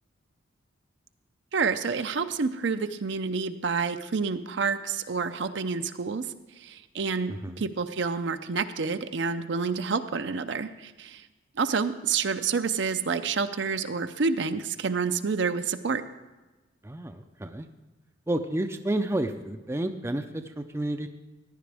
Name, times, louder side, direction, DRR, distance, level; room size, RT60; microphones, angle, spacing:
voice 1, 1.5-6.3 6.6-11.2 11.6-16.0, right 5 dB, 60° right, 10 dB, 0.5 m, -28 dB
voice 2, 7.3-7.6 16.8-17.7 18.3-21.1, right 1 dB, 15° right, 7 dB, 0.4 m, -30 dB
15.0 x 10.5 x 3.4 m, 1.2 s
head